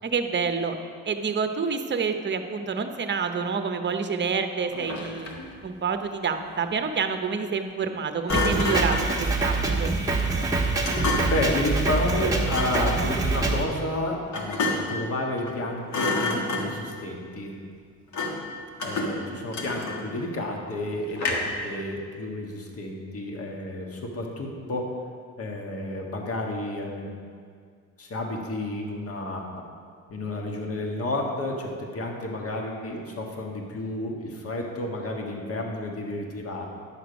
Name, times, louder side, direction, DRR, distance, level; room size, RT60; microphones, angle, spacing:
voice 1, 0.0-0.8 1.0-5.3 5.6-9.9, right 5 dB, 40° right, 7 dB, 0.8 m, -28 dB
Thump thud, 4.7-5.5 8.3-9.2 10.8-11.5 12.4-12.9 14.3-15.0 15.4-15.6 15.9-16.9 18.1-18.5 18.8-20.2 21.2-21.6, left 2 dB, 65° left, 1.6 m, -28 dB
Drum kit, 8.3-13.6, right 3 dB, 10° right, 1.3 m, -25 dB
voice 2, 11.3-17.6 18.8-24.9 25.4-27.2 28.0-29.4 30.1-36.7, left 1 dB, 50° left, 1 dB, 1.6 m, -31 dB
10.5 x 6.6 x 5.2 m, 2.1 s
cardioid pair, 90°, 30 cm